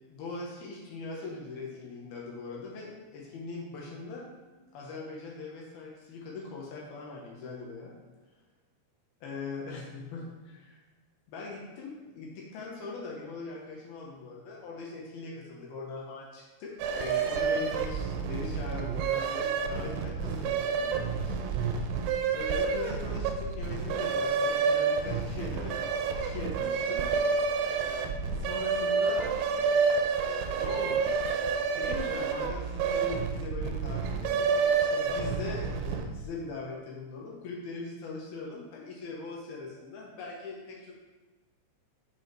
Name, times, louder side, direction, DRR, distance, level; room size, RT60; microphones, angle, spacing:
voice 1, 0.1-4.3 4.7-7.9 9.2-10.8 11.3-20.9 21.2-22.0 22.3-27.1 28.3-29.3 30.6-40.9, left 3 dB, 70° left, -2 dB, 2.3 m, -41 dB
sound 1, 16.8-36.2, right 5 dB, 80° right, 3.0 m, -29 dB
7.8 x 5.6 x 4.5 m, 1.2 s
omnidirectional pair, 5.8 m